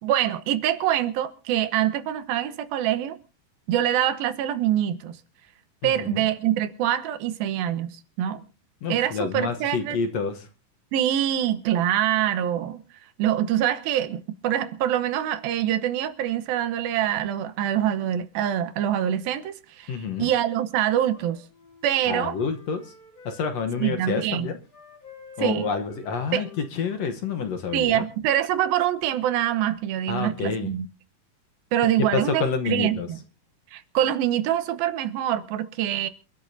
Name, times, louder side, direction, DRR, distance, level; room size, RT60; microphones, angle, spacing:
voice 1, 0.0-3.2 3.7-5.2 5.8-8.4 8.9-10.0 10.9-12.8 13.2-21.4 21.8-22.4 23.8-24.5 25.4-25.7 26.3-26.5 27.7-30.9 31.7-33.2 33.7-36.1, right 11 dB, 90° right, 2.9 m, -25 dB
voice 2, 5.8-6.3 8.8-10.5 19.9-20.3 22.1-22.9 23.3-24.6 25.4-28.0 30.1-30.7 32.1-33.1, left 5 dB, 60° left, 1.9 m, -28 dB
Wind instrument woodwind instrument, 21.1-24.2 24.6-28.1, left 3 dB, 45° left, 5.6 m, -50 dB
28.0 x 12.5 x 2.7 m
omnidirectional pair, 4.1 m